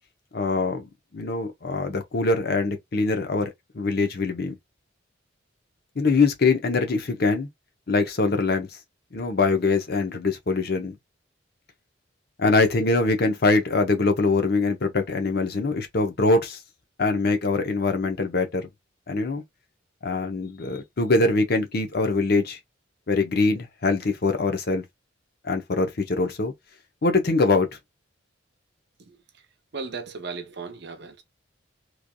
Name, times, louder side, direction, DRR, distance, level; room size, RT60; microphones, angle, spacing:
voice 1, 0.3-0.9 1.1-4.5 6.0-7.5 7.9-8.7 9.1-11.0 12.4-16.6 17.0-18.7 19.1-19.4 20.0-22.6 23.1-24.8 25.4-26.5 27.0-27.7, left 3 dB, 55° left, 0.7 m, -23 dB
voice 2, 29.1-29.5 29.7-31.2, right 4 dB, 60° right, 0.7 m, -36 dB
3.2 x 2.5 x 2.3 m
head